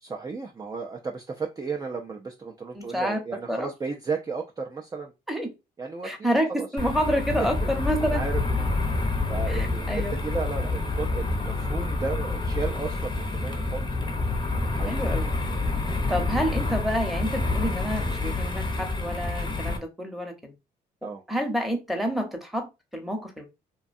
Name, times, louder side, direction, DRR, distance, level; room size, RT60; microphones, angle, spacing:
voice 1, 0.0-5.1 5.8-6.7 7.4-7.7 8.1-8.4 8.9-13.9 14.7-15.2 15.6-15.8 21.0-21.2, right 4 dB, 20° right, 0.4 m, -34 dB
voice 2, 2.7-3.2 3.5-3.7 5.3-5.5 6.0-8.2 9.5-10.1 14.9-15.3 16.1-20.5 21.3-23.5, equal, ahead, 0.8 m, -28 dB
sound 1, 6.8-19.8, left 3 dB, 25° left, 0.7 m, -28 dB
2.5 x 2.2 x 2.5 m
supercardioid pair, 65°, 19 cm